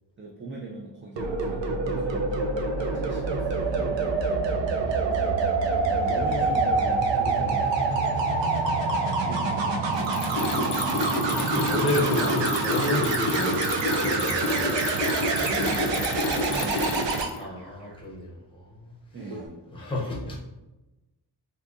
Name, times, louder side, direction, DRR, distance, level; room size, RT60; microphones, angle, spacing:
voice 1, 0.2-2.2 2.8-4.1 5.9-8.2 9.2-10.2 11.3-12.1 15.4-17.3 19.1-19.6, right 2 dB, 30° right, -3 dB, 0.4 m, -39 dB
sound 1, 1.2-17.3 19.2-19.5, right 3 dB, 85° right, 0.5 m, -26 dB
Mechanisms, 10.0-17.4, left 2 dB, 75° left, 0.6 m, -29 dB
voice 2, 10.2-13.6 14.0-15.1 16.4-16.8 17.3-18.9 19.7-20.4, left 2 dB, 10° left, -3 dB, 0.6 m, -32 dB
3.6 x 2.6 x 2.5 m, 1.0 s
wide cardioid pair, 120°, 43 cm